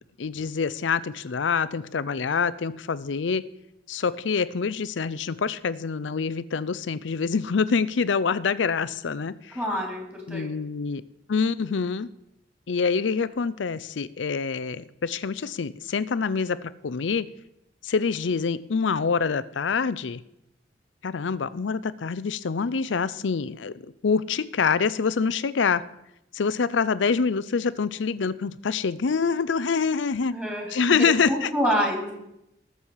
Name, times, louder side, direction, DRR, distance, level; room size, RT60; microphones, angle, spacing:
voice 1, 0.2-3.4 3.9-9.6 10.3-11.0 11.3-12.1 12.7-17.3 17.8-20.2 21.0-23.7 24.0-25.8 26.3-30.3 30.7-31.5, left 5 dB, 80° left, 17 dB, 0.5 m, -26 dB
voice 2, 9.5-10.5 30.3-30.7 31.3-32.1, equal, 10° right, -1 dB, 3.3 m, -27 dB
19.0 x 7.0 x 4.8 m, 0.84 s
head